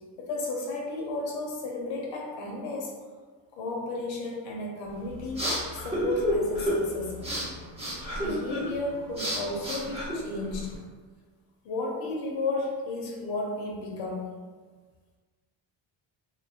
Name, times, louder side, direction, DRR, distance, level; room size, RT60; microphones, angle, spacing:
voice 1, 0.2-2.9 3.5-7.3 8.2-10.8 11.6-14.3, left 2 dB, 80° left, -1 dB, 0.7 m, -33 dB
sound 1, 4.9-10.8, equal, 15° right, 0.6 m, -31 dB
2.9 x 2.1 x 2.4 m, 1.5 s
cardioid pair, 140°, 46 cm